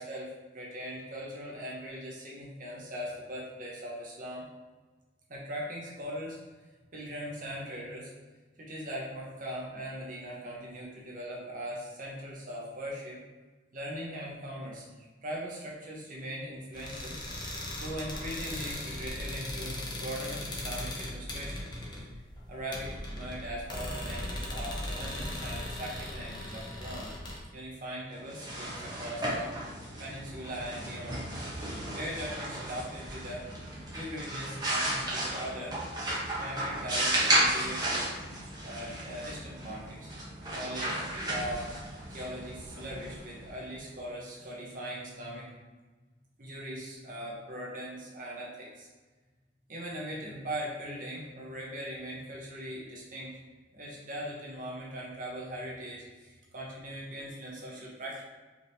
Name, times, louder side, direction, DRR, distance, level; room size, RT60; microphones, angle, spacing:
voice 1, 0.0-4.4 5.3-6.4 6.9-8.1 8.6-13.2 13.7-14.8 15.2-21.7 22.5-27.1 27.5-29.5 30.0-31.2 31.9-33.5 33.9-35.8 36.4-38.1 38.6-40.1 40.5-41.7 42.1-45.5 46.4-48.9 49.7-53.4 53.7-58.2, equal, 45° right, -4 dB, 1.0 m, -40 dB
sound 1, 16.7-27.4, left 1 dB, 25° left, 0.7 m, -38 dB
sound 2, 28.2-43.8, right 1 dB, 20° right, 1.0 m, -34 dB
4.9 x 3.4 x 2.7 m, 1.3 s
head